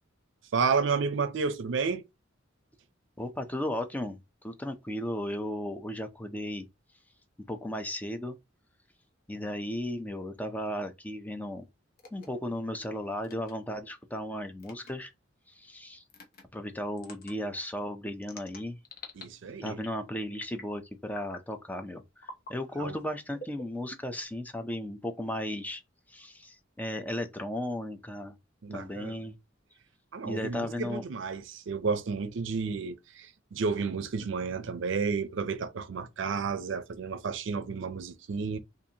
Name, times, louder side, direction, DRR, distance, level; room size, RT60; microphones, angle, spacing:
voice 1, 0.5-2.0 19.2-19.8 22.8-22.9 28.6-29.2 30.1-38.6, right 5 dB, 70° right, 0.5 m, -31 dB
voice 2, 3.2-6.7 7.5-8.4 9.3-11.7 12.1-15.1 15.5-16.0 16.5-18.8 19.6-25.8 26.1-28.4 28.7-29.4 30.2-31.0, left 1 dB, 10° left, 0.4 m, -35 dB
sound 1, 12.0-12.3 13.2-13.5 14.6-14.9 16.1-16.4 17.0-17.3 18.2-19.2 19.6-20.0 20.3-20.7 21.1-21.5 22.2-22.5 23.3-24.2, left 2 dB, 50° left, 0.7 m, -46 dB
4.0 x 2.5 x 2.7 m
head